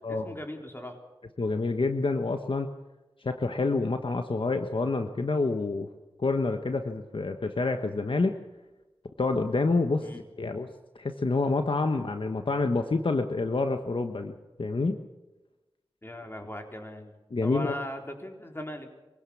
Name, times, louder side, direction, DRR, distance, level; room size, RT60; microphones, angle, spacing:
voice 1, 0.1-1.0 10.0-10.2 16.0-17.1 17.4-18.9, left 1 dB, 25° left, 3 dB, 4.1 m, -39 dB
voice 2, 1.4-2.7 3.2-5.9 6.2-8.3 9.2-10.1 10.4-10.7 11.0-15.0 17.3-17.8, left 3 dB, 65° left, 6 dB, 1.3 m, -27 dB
24.5 x 17.0 x 7.3 m, 1.1 s
cardioid pair, 45°, 10 cm